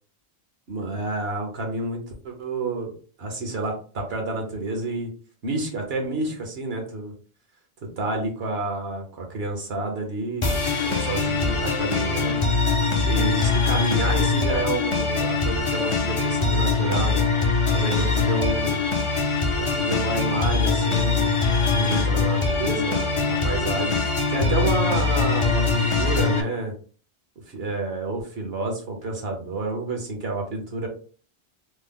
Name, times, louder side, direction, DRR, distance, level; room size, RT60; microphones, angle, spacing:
voice 1, 0.7-5.1 5.4-7.1 8.0-10.6 10.8-12.4 13.1-17.2 17.7-18.8 19.6-21.3 21.6-24.0 24.3-26.7 27.5-30.9, right 2 dB, 65° right, 2 dB, 1.2 m, -29 dB
sound 1, 10.4-26.4, left 4 dB, 40° left, 0.5 m, -22 dB
3.3 x 2.0 x 3.5 m, 0.40 s
omnidirectional pair, 1.1 m